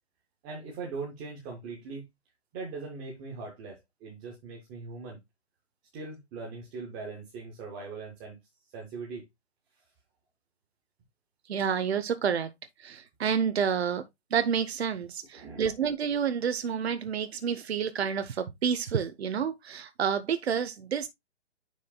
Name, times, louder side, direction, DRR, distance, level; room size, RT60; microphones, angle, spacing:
voice 1, 0.4-2.0 2.5-5.2 5.9-8.4 8.7-9.2 15.3-15.7, right 4 dB, 5° right, 0.5 m, -40 dB
voice 2, 11.5-12.5 12.8-14.0 14.3-21.1, right 7 dB, 65° right, 1.0 m, -29 dB
9.6 x 4.9 x 2.2 m
hypercardioid pair, 155°, 34 cm